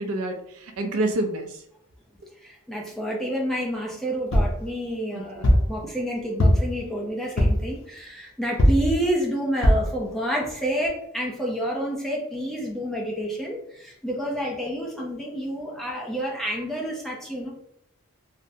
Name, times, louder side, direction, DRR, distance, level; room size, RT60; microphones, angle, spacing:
voice 1, 0.0-1.6 5.1-5.5, right 2 dB, 80° right, 5 dB, 0.5 m, -28 dB
voice 2, 2.4-17.5, equal, ahead, -3 dB, 0.4 m, -29 dB
sound 1, 4.3-4.6 5.4-5.7 6.4-6.8 7.4-7.7 8.6-8.9 9.6-9.9 10.5-10.6 10.9-11.0, equal, 65° left, 0.6 m, -19 dB
3.4 x 2.0 x 2.6 m, 0.72 s
head